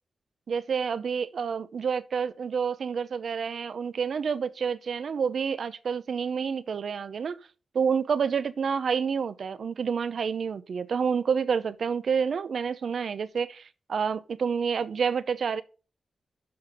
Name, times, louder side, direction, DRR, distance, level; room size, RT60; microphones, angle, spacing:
voice 1, 0.5-7.4 7.7-15.6, right 6 dB, 70° right, 0.7 m, -28 dB
6.5 x 5.8 x 6.8 m
wide cardioid pair, 140°, 0 cm